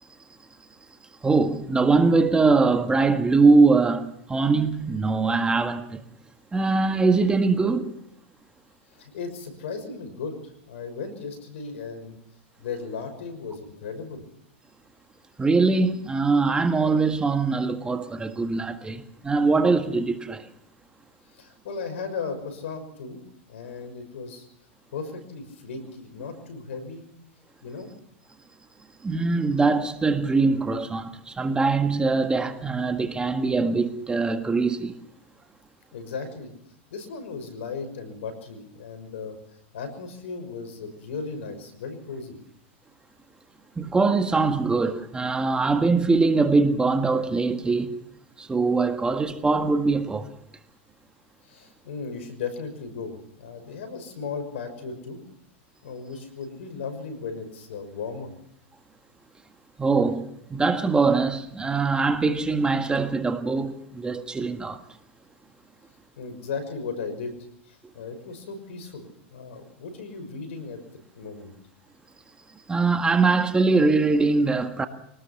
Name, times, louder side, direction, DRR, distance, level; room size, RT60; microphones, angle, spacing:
voice 1, 1.2-6.0 6.5-7.9 15.4-20.4 29.0-34.9 43.8-47.9 48.4-50.2 59.8-64.8 72.7-74.9, right 3 dB, 15° right, 1.7 m, -22 dB
voice 2, 8.9-10.4 10.7-12.2 12.6-14.2 21.3-23.2 23.5-24.5 24.9-27.2 27.6-27.9 35.9-36.5 36.9-39.4 39.7-42.4 51.4-55.3 55.8-58.3 66.2-67.3 67.7-70.8 71.1-71.5, left 5 dB, 80° left, 6.1 m, -36 dB
24.5 x 19.0 x 5.9 m
hypercardioid pair, 120°, 7 cm